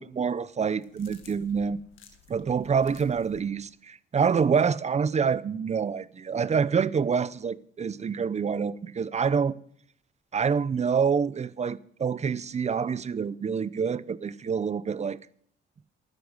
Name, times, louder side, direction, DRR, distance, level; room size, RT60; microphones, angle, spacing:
voice 1, 0.0-1.8 2.3-9.5 10.3-15.2, right 6 dB, 35° right, 0.7 m, -27 dB
sound 1, 0.6-3.5, left 8 dB, 85° left, 1.9 m, -54 dB
12.5 x 10.5 x 6.4 m
cardioid pair, 90°, 20 cm